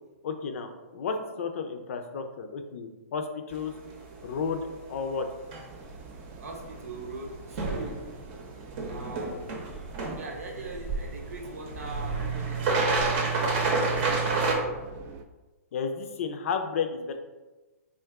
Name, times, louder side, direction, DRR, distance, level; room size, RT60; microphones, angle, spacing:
voice 1, 0.2-3.7 4.2-5.3 15.7-17.2, left 5 dB, 60° left, 6 dB, 0.5 m, -32 dB
sound 1, 3.5-14.6, right 3 dB, 40° right, 0.8 m, -31 dB
Breathing, 5.7-14.2, right 2 dB, ahead, 0.7 m, -45 dB
sound 2, 5.7-15.2, right 3 dB, 25° right, 0.3 m, -43 dB
voice 2, 6.4-8.1 8.9-9.5 10.2-13.8, right 2 dB, 70° right, 2 dB, 0.8 m, -41 dB
3.7 x 2.5 x 3.4 m, 1.2 s
hypercardioid pair, 125°, 8 cm